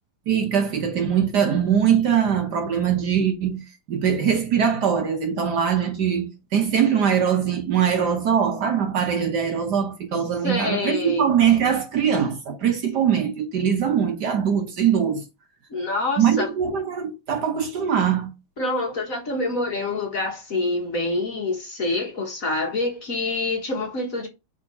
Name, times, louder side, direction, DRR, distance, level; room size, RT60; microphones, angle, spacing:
voice 1, 0.3-15.2 16.2-18.3, right 8 dB, 60° right, 1.4 m, -22 dB
voice 2, 10.4-11.3 15.7-16.5 18.6-24.3, left 2 dB, 45° left, 1.6 m, -26 dB
5.1 x 3.9 x 5.3 m
omnidirectional pair, 2.3 m